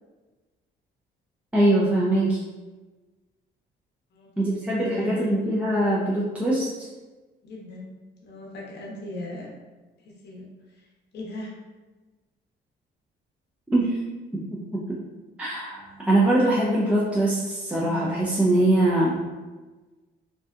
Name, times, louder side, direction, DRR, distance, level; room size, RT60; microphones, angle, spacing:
voice 1, 1.5-2.4 4.4-6.9 13.7-14.0 14.3-14.8 15.4-19.2, right 1 dB, 5° right, -6 dB, 0.4 m, -22 dB
voice 2, 4.1-5.3 7.4-7.9 8.2-9.5 10.0-10.5 10.7-10.9 11.1-11.5, left 1 dB, 60° left, -2 dB, 0.7 m, -38 dB
2.7 x 2.2 x 2.3 m, 1.2 s
cardioid pair, 90°, 20 cm